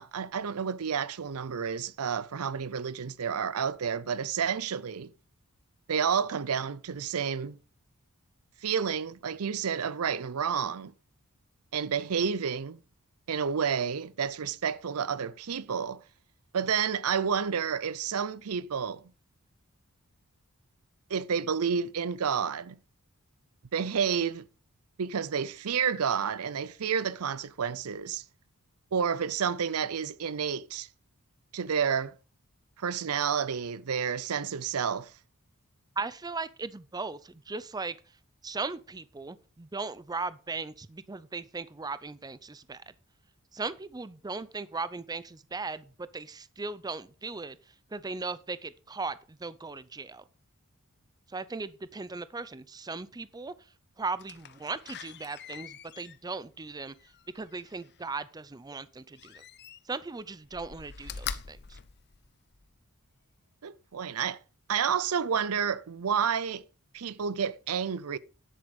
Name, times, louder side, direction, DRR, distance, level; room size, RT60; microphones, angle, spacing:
voice 1, 0.0-5.1 5.9-7.6 8.6-10.9 11.7-12.8 13.3-16.0 16.5-19.0 21.1-22.8 23.7-24.5 25.0-28.2 28.9-30.9 31.5-32.1 32.8-35.1 63.6-64.4 64.7-66.6 66.9-68.2, right 7 dB, 70° right, 0.6 m, -30 dB
voice 2, 36.0-38.0 38.4-42.8 43.5-50.2 51.3-53.5 54.0-56.9 57.3-59.4 59.9-61.8, right 3 dB, 15° right, 0.5 m, -38 dB
Slam, 54.2-58.0 59.1-60.1 60.4-62.7 63.2-63.3, left 7 dB, 50° left, 0.7 m, -44 dB
10.0 x 7.9 x 5.2 m
head